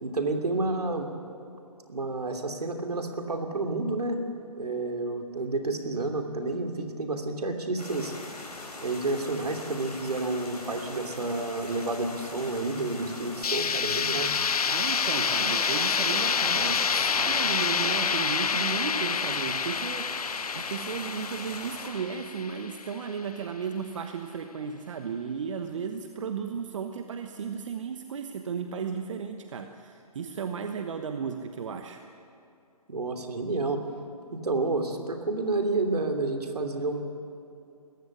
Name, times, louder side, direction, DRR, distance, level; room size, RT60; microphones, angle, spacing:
voice 1, 0.0-1.1 1.9-4.2 4.6-8.1 8.8-14.3 32.9-33.8 34.3-37.0, right 2 dB, 75° right, 4 dB, 3.0 m, -30 dB
sound 1, 7.8-21.9, left 2 dB, 85° left, 4.9 m, -41 dB
sound 2, 13.4-23.2, left 6 dB, 70° left, 0.9 m, -28 dB
voice 2, 14.7-32.0, right 6 dB, 50° right, 7 dB, 1.1 m, -35 dB
20.5 x 15.5 x 9.7 m, 2.6 s
figure-of-eight pair, 145°, 20 cm